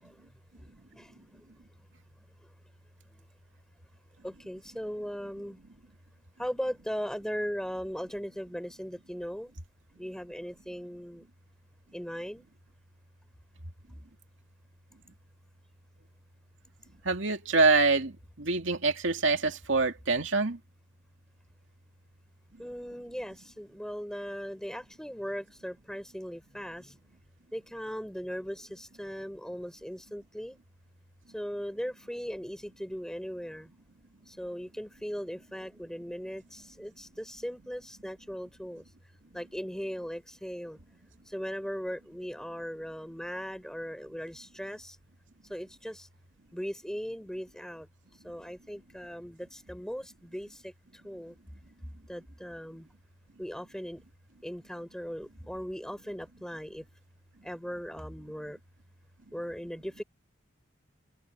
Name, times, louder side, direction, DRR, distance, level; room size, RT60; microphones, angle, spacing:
voice 1, 0.6-1.5 3.1-3.2 4.2-5.6 6.4-9.5 10.0-11.2 11.9-12.5 22.6-27.0 27.5-30.6 31.3-33.7 34.3-38.8 39.3-40.8 41.3-45.0 45.5-46.1 46.5-47.9 48.2-51.4 52.1-52.9 53.4-54.0 54.4-56.8 57.4-58.6 59.3-60.0, equal, 5° left, 4.3 m, -38 dB
voice 2, 17.0-20.6, right 3 dB, 75° right, 2.4 m, -25 dB
open air
head